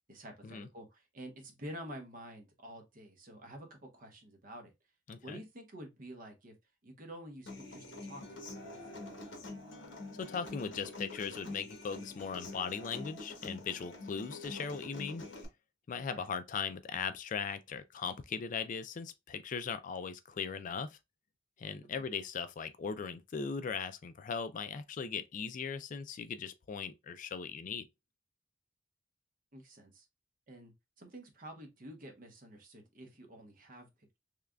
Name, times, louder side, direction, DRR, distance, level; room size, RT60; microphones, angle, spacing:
voice 1, 0.1-4.7 5.2-6.5 6.8-9.5 16.1-16.3 22.0-22.1 29.5-30.1 30.5-34.2, equal, 45° right, 0.9 m, -49 dB
voice 2, 5.1-5.4 10.1-15.2 15.9-21.0 21.6-27.9, left 6 dB, 40° left, 0.3 m, -39 dB
Human voice / Acoustic guitar, 7.5-15.4, left 2 dB, 65° left, 1.2 m, -46 dB
3.6 x 3.2 x 2.2 m
head